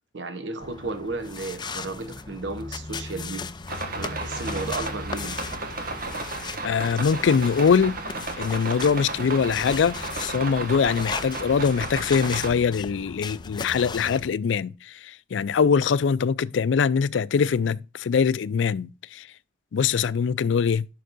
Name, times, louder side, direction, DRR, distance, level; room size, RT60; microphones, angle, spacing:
voice 1, 0.1-3.5 3.8-5.4, right 3 dB, 75° right, 0.9 m, -33 dB
sound 1, 0.6-14.3, left 4 dB, 25° left, 0.5 m, -37 dB
sound 2, 3.7-12.5, right 3 dB, 55° right, 1.5 m, -34 dB
voice 2, 6.6-8.0 8.4-19.3 19.7-20.9, left 6 dB, 90° left, 0.4 m, -23 dB
11.0 x 4.5 x 2.6 m
head